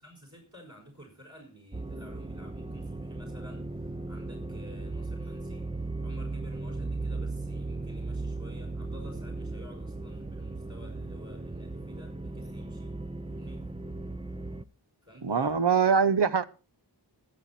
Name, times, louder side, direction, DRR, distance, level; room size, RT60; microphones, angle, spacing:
voice 1, 0.0-5.7 6.0-13.7 15.0-15.5, equal, 40° right, 2 dB, 5.4 m, -52 dB
sound 1, 1.7-14.6, right 2 dB, 15° right, 0.6 m, -37 dB
voice 2, 15.2-16.4, right 6 dB, 70° right, 13 dB, 0.9 m, -23 dB
21.5 x 7.6 x 4.2 m, 0.33 s
wide cardioid pair, 45°, 42 cm